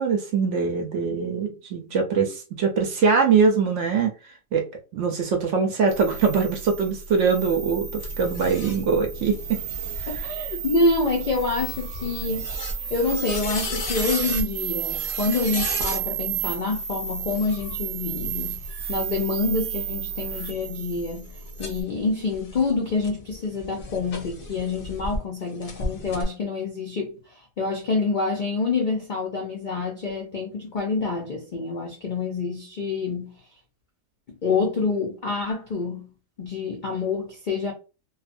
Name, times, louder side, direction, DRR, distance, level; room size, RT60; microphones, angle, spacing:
voice 1, 0.0-4.1 4.5-4.6 4.9-9.6 10.1-10.2, right 5 dB, 65° right, 0.8 m, -22 dB
sound 1, 5.9-21.8, right 8 dB, 85° right, 1.1 m, -32 dB
sound 2, 8.0-16.0 17.2-19.5 20.1-25.2 25.6-26.2, left 3 dB, 50° left, 0.7 m, -36 dB
voice 2, 10.1-18.6 18.9-21.3 21.6-33.3 34.4-36.1 36.4-37.7, left 3 dB, 85° left, 0.4 m, -27 dB
2.6 x 2.4 x 2.5 m
omnidirectional pair, 1.6 m